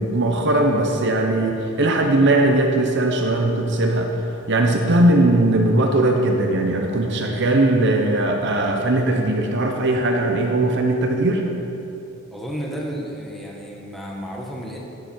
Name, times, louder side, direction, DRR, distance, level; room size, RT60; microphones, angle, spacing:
voice 1, 0.0-4.1 4.5-11.4, right 2 dB, 55° right, 2 dB, 0.9 m, -19 dB
voice 2, 12.3-14.8, equal, ahead, -3 dB, 1.3 m, -32 dB
12.5 x 9.9 x 4.4 m, 3.0 s
head